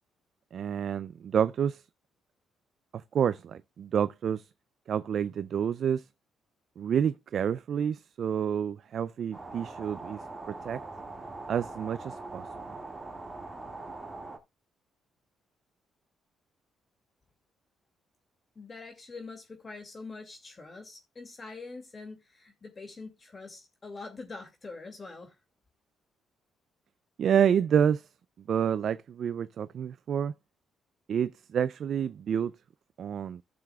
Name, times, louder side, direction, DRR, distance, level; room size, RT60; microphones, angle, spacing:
voice 1, 0.5-1.8 2.9-4.5 4.9-6.0 6.8-10.2 10.6-10.8 11.5-12.5 27.2-28.1 28.5-30.3 31.1-32.5 33.0-33.4, right 8 dB, 60° right, 0.4 m, -28 dB
sound 1, 9.3-14.4, right 3 dB, 15° right, 2.1 m, -42 dB
voice 2, 18.6-25.4, left 3 dB, 35° left, 2.3 m, -44 dB
15.5 x 6.8 x 2.3 m
cardioid pair, 90°, 0 cm